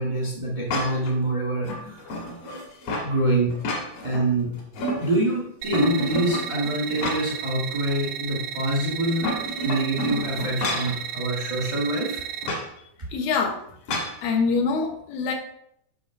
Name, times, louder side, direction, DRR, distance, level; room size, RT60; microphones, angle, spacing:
voice 1, 0.0-2.0 3.0-3.6 4.0-4.6 5.0-9.3 9.6-12.2, right 1 dB, 35° right, -2 dB, 0.7 m, -25 dB
sound 1, 0.7-1.1 1.6-3.1 3.5-4.2 4.6-5.3 5.7-7.5 7.9-8.0 9.0-11.0 12.4-12.7 13.9-14.2, left 1 dB, 50° left, 2.1 m, -30 dB
sound 2, 5.6-12.5, right 9 dB, 90° right, 2.7 m, -34 dB
voice 2, 13.1-13.6 13.9-15.3, left 5 dB, 75° left, 2 dB, 3.0 m, -25 dB
9.0 x 5.7 x 4.7 m, 0.71 s
omnidirectional pair, 4.4 m